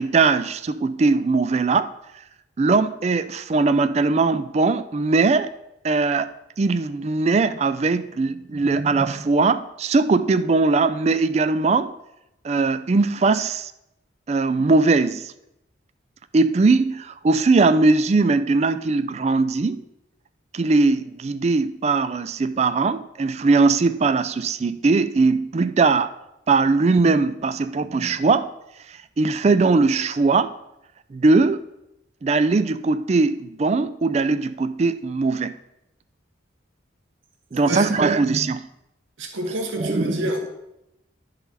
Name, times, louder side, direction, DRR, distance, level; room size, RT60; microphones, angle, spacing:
voice 1, 0.0-1.9 2.6-5.5 5.8-6.3 6.6-11.9 12.4-13.7 14.3-15.3 16.3-19.8 20.5-26.1 26.5-28.5 28.9-30.5 31.1-31.6 32.2-35.5 37.5-38.7 39.8-40.2, right 3 dB, 35° right, 13 dB, 0.3 m, -20 dB
voice 2, 39.2-40.5, right 1 dB, 85° right, 2 dB, 1.2 m, -28 dB
12.0 x 4.0 x 4.1 m, 0.86 s
head